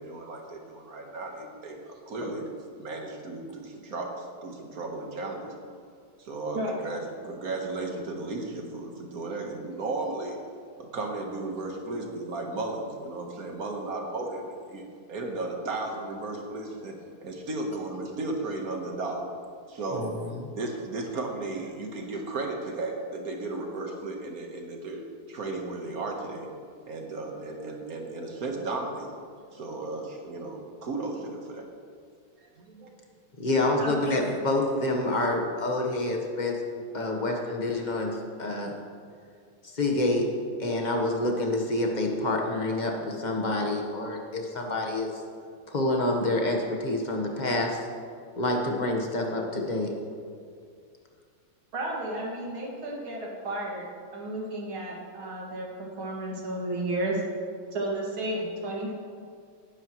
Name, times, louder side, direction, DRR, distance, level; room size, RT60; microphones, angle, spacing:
voice 1, 0.0-2.5 2.8-5.5 6.2-10.4 10.8-17.0 17.2-19.2 19.7-20.1 20.5-25.0 25.3-26.5 26.9-29.2 29.5-31.7 32.4-32.9, right 2 dB, 50° right, 2 dB, 1.6 m, -35 dB
voice 2, 19.9-20.5 33.4-38.7 39.6-40.3 40.6-45.1 45.7-47.8 48.4-49.9, left 2 dB, 30° left, 1 dB, 1.0 m, -27 dB
voice 3, 33.8-34.1 51.7-53.9 54.1-57.2 57.7-58.9, right 1 dB, 75° right, -3 dB, 3.0 m, -32 dB
18.0 x 9.7 x 3.1 m, 2.2 s
omnidirectional pair, 2.3 m